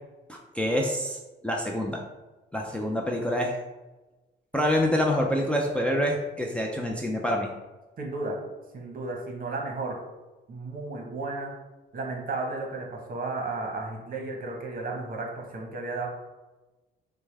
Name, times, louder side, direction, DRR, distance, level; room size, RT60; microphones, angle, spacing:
voice 1, 0.3-1.2 1.4-2.0 2.5-3.6 4.5-7.5, equal, 5° left, -1 dB, 0.5 m, -26 dB
voice 2, 8.0-8.4 8.7-10.0 10.5-11.5 11.9-16.1, right 3 dB, 45° right, 1 dB, 1.1 m, -33 dB
6.1 x 2.2 x 3.3 m, 1.1 s
cardioid pair, 90°, 20 cm